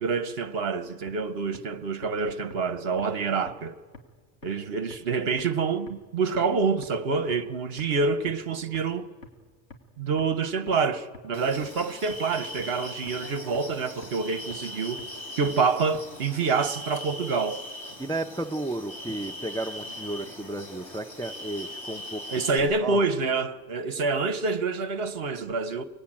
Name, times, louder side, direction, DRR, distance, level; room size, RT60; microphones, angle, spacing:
voice 1, 0.0-3.7 4.4-9.1 10.0-15.0 15.4-17.6 22.3-25.8, right 4 dB, 60° right, 1.1 m, -27 dB
sound 1, 1.1-1.2 1.5-1.6 2.0-2.1 2.5-2.6 3.0-3.1 3.5-3.6 3.9-4.0 4.4-4.5 4.9-5.0 5.4-5.5 5.9-6.0 6.3-6.4 6.8-6.9 7.3-7.4 7.8-7.9 8.3-8.4 8.7-8.8 9.2-9.3 9.7-9.8 10.2-10.3 10.7-10.8 11.1-11.2 11.6-11.7 12.1-12.2 12.6-12.7 13.1-13.2 13.5-13.6 14.0-14.1 14.5-14.6 15.0-15.1 15.5-15.6 15.9-16.0, left 3 dB, 85° left, 2.2 m, -44 dB
sound 2, 11.3-22.6, left 1 dB, 70° left, 3.6 m, -40 dB
voice 2, 18.0-22.2 22.8-23.1, right 2 dB, 5° left, 0.7 m, -33 dB
24.5 x 20.5 x 8.8 m
omnidirectional pair, 1.2 m